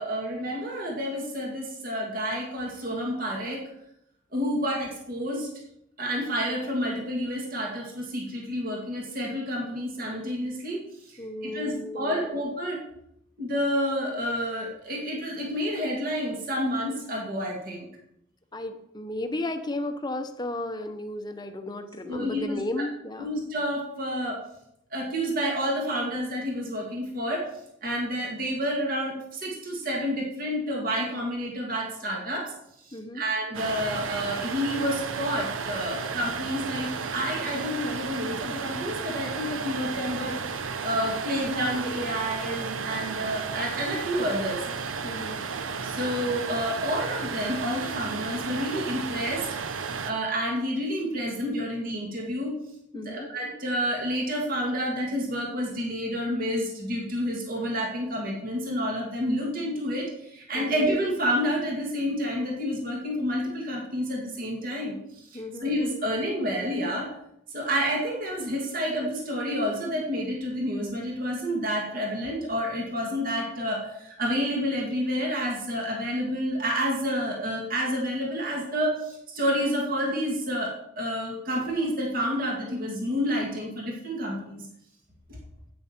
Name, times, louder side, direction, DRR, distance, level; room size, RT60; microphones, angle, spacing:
voice 1, 0.0-3.6 4.3-5.5 6.0-10.8 11.1-12.8 13.4-17.9 22.1-22.6 23.2-24.4 24.9-27.5 27.8-32.5 32.9-40.4 40.8-44.6 45.8-49.5 50.0-52.5 52.9-67.1 67.5-84.7, equal, 45° right, -1 dB, 2.1 m, -29 dB
voice 2, 11.2-12.4 18.5-23.3 32.9-33.2 45.0-45.4 52.9-53.3 60.5-60.8 65.3-65.8, left 1 dB, 20° left, 7 dB, 0.9 m, -34 dB
sound 1, 33.5-50.1, right 5 dB, 80° right, 0.8 m, -33 dB
11.0 x 8.8 x 4.5 m, 0.77 s
head